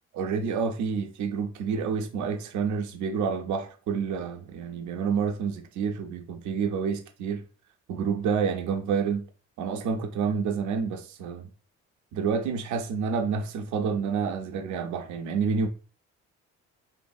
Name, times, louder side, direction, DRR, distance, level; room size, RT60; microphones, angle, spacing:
voice 1, 0.1-7.4 7.9-9.2 9.6-11.5 12.1-15.7, right 6 dB, 75° right, 0.5 m, -28 dB
2.6 x 2.6 x 2.3 m
cardioid pair, 90°, 30 cm